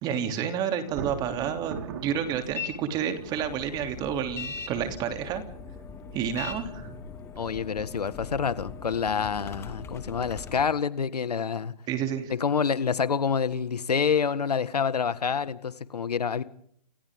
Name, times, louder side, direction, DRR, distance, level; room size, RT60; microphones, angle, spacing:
voice 1, 0.0-5.4 6.1-7.0 11.9-12.3, right 8 dB, 20° right, 6 dB, 3.1 m, -30 dB
Thunder, 0.8-4.1, right 6 dB, 40° right, 4.6 m, -40 dB
sound 1, 2.5-2.7 3.1-10.6, left 5 dB, 15° left, 2.3 m, -40 dB
voice 2, 7.4-11.7 12.3-16.4, left 6 dB, 80° left, 13 dB, 1.8 m, -27 dB
29.5 x 28.5 x 3.8 m, 0.66 s
hypercardioid pair, 150°, 20 cm